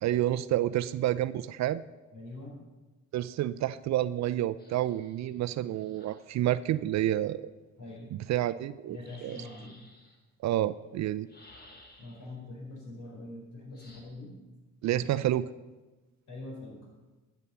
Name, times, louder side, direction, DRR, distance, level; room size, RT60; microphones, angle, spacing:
voice 1, 0.0-1.8 3.1-7.5 8.1-9.4 10.4-11.3 14.8-15.5, right 13 dB, 60° right, 15 dB, 0.5 m, -29 dB
voice 2, 2.1-2.5 7.8-8.1 8.9-9.7 12.0-14.3 14.8-15.0 16.3-16.8, left 2 dB, 65° left, 0 dB, 4.8 m, -43 dB
sound 1, 4.6-6.3 8.9-10.2 11.3-12.4 13.7-14.0, left 1 dB, 30° left, 2.7 m, -57 dB
12.5 x 7.2 x 6.7 m, 1.2 s
supercardioid pair, 80°, 32 cm